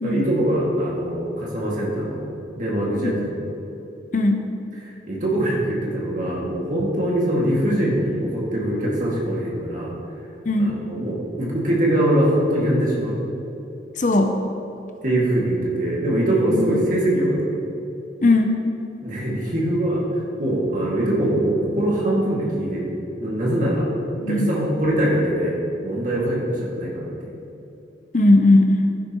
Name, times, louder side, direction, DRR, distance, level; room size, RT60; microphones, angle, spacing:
voice 1, 0.0-2.2 2.6-3.3 4.8-10.0 10.6-13.2 15.0-17.5 19.0-20.0 20.4-22.9 23.2-23.9 24.3-27.3, right 1 dB, 45° right, -5 dB, 2.3 m, -22 dB
voice 2, 14.0-14.4 16.5-16.6 18.2-18.6 24.2-24.5 28.1-28.8, left 2 dB, 45° left, 5 dB, 0.7 m, -18 dB
14.0 x 9.7 x 3.1 m, 2.8 s
head